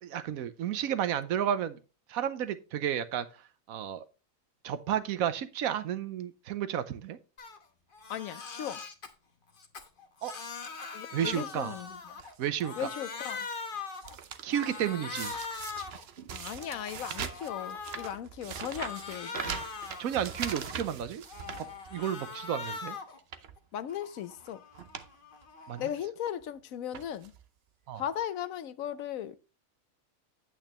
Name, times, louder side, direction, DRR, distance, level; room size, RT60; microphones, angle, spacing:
voice 1, 0.0-1.8 2.1-3.3 3.7-4.0 4.6-7.2 10.2-10.3 11.1-11.8 12.4-12.9 14.4-15.3 20.0-21.2 21.9-23.0 25.7-25.9 27.9-28.0, right 9 dB, 90° right, 1.2 m, -32 dB
Crying sobbing, 7.4-7.6 7.9-9.1 9.6-12.3 12.6-14.1 14.5-16.0 16.5-18.1 18.5-20.9 21.3-23.2 23.6-25.9, left 5 dB, 40° left, 1.2 m, -42 dB
voice 2, 8.1-8.8 10.9-12.0 12.8-13.5 16.3-19.6 23.7-24.6 25.8-27.3 27.9-29.4, left 10 dB, 75° left, 1.1 m, -37 dB
sound 1, 12.2-12.6 13.2-13.5 13.8-14.8 15.1-22.2 22.6-22.8 23.2-23.6 24.4-24.5 24.7-25.1 25.4-25.5 26.4-26.6 26.9-27.4 28.2-28.3 28.5-28.6, right 7 dB, 55° right, 0.9 m, -41 dB
9.0 x 8.6 x 3.0 m
omnidirectional pair, 1.4 m